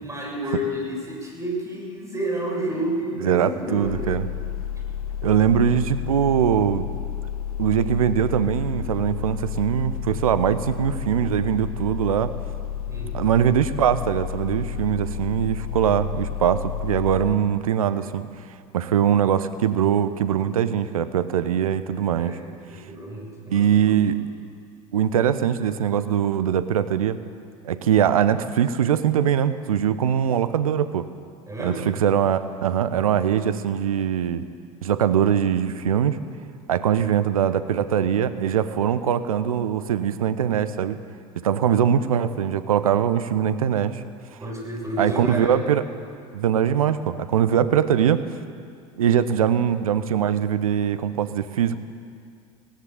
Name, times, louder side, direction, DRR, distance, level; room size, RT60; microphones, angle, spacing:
voice 1, 0.0-4.1 12.9-13.2 15.7-15.9 19.0-19.1 22.1-24.0 31.5-31.9 41.5-41.9 44.4-45.7, equal, 15° right, -1 dB, 7.4 m, -30 dB
voice 2, 3.2-4.3 5.2-6.9 7.6-12.3 13.1-18.3 18.7-22.4 23.5-24.2 24.9-27.2 27.6-31.1 31.6-34.4 34.8-36.2 36.7-41.0 41.4-44.0 45.0-45.8 46.3-48.2 49.0-51.8, right 9 dB, 70° right, 13 dB, 0.9 m, -22 dB
sound 1, 3.8-17.4, left 9 dB, 75° left, 1.3 m, -31 dB
18.0 x 18.0 x 8.6 m, 2.3 s
figure-of-eight pair, 70°, 18 cm